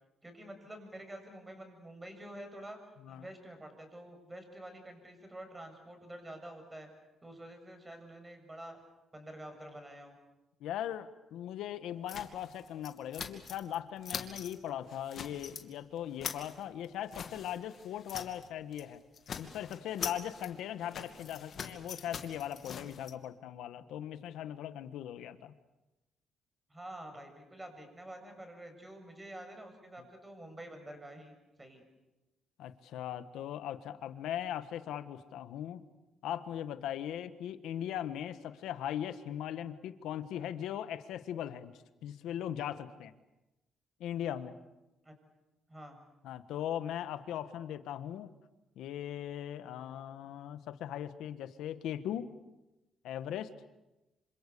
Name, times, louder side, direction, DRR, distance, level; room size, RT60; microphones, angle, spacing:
voice 1, 0.2-2.8 3.1-6.9 7.2-8.8 9.1-10.1 26.7-31.8 45.0-45.1 45.7-46.0, right 1 dB, 15° right, 5 dB, 7.5 m, -48 dB
voice 2, 10.6-19.0 19.4-25.5 32.6-35.8 36.2-41.7 42.0-43.1 44.0-44.5 46.2-48.3 48.7-52.3 53.0-53.5, left 10 dB, 85° left, 11 dB, 1.4 m, -39 dB
sound 1, 12.1-13.8 14.0-14.6 14.9-15.7 16.0-18.5 18.7-18.9 19.1-23.1, left 7 dB, 55° left, 2.6 m, -43 dB
27.5 x 26.5 x 7.0 m, 1.0 s
cardioid pair, 90°, 0 cm